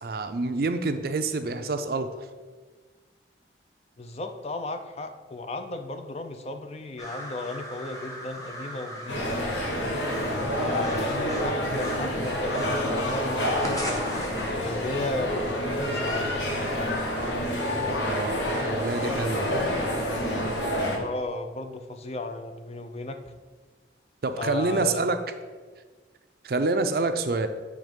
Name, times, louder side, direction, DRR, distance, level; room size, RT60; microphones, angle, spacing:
voice 1, 0.0-2.1 18.1-18.4 18.7-19.6 24.2-25.2 26.4-27.5, right 3 dB, 55° right, 9 dB, 0.4 m, -27 dB
voice 2, 4.0-9.7 10.5-13.7 14.5-16.4 19.3-19.4 20.9-23.2 24.4-25.1, left 2 dB, 35° left, 7 dB, 0.4 m, -35 dB
sound 1, 7.0-14.5, equal, 20° left, 1.0 m, -38 dB
sound 2, 9.1-21.0, equal, 80° left, 1.2 m, -28 dB
7.9 x 3.5 x 5.1 m, 1.4 s
head